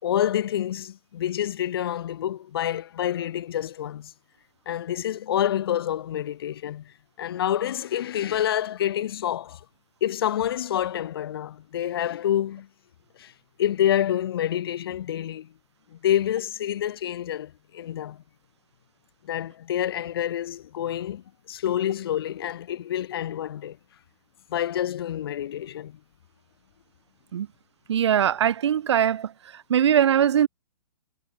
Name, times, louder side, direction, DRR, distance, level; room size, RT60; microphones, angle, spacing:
voice 1, 0.0-4.1 4.7-9.6 10.0-12.7 13.2-13.3 13.6-15.5 15.9-18.2 19.2-23.8 24.5-26.0, left 11 dB, 45° left, 2.4 m, -27 dB
voice 2, 27.9-29.3 29.7-30.5, right 9 dB, 55° right, 1.7 m, -21 dB
hypercardioid pair, 170°, 17 cm